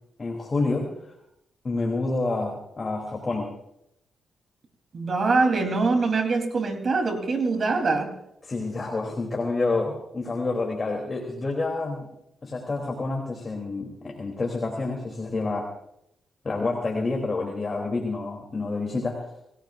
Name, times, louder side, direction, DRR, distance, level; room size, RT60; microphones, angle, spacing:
voice 1, 0.2-1.1 1.6-3.5 8.4-12.1 12.4-15.7 16.4-19.3, left 3 dB, 35° left, 0 dB, 3.2 m, -28 dB
voice 2, 4.9-8.1, right 3 dB, 50° right, 5 dB, 3.5 m, -23 dB
29.0 x 16.5 x 2.6 m, 0.80 s
cardioid pair, 65°, 0 cm